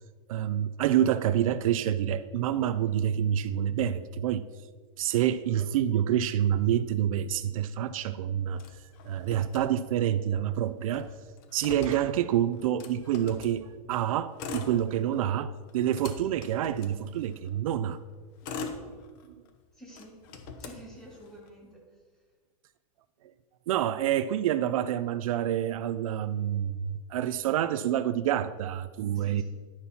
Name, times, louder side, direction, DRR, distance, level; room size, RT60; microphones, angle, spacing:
voice 1, 0.3-4.5 5.0-8.6 9.0-11.1 11.5-18.0 23.7-29.4, right 10 dB, 75° right, 13 dB, 0.4 m, -27 dB
Motor vehicle (road), 8.6-10.2 10.5-10.6 10.8-13.6 14.2-15.3 15.7-17.5 18.1-19.5 19.9-21.5, left 4 dB, 40° left, 0.9 m, -42 dB
voice 2, 19.7-20.2 20.6-21.9 29.1-29.4, equal, 5° left, -3 dB, 1.7 m, -49 dB
11.5 x 5.8 x 4.2 m, 1.4 s
supercardioid pair, 175°, 18 cm